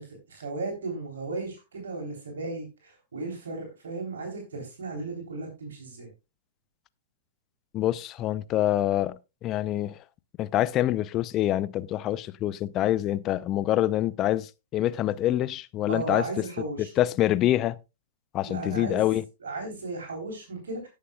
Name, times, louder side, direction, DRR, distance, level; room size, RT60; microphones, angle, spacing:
voice 1, 0.0-6.1 15.9-16.9 18.4-19.1 19.4-20.9, right 3 dB, 65° right, 3.4 m, -35 dB
voice 2, 7.7-10.0 10.4-16.2 17.0-17.8 18.3-19.2, left 13 dB, 30° left, 0.5 m, -26 dB
18.0 x 6.6 x 2.3 m
figure-of-eight pair, 105°, 0 cm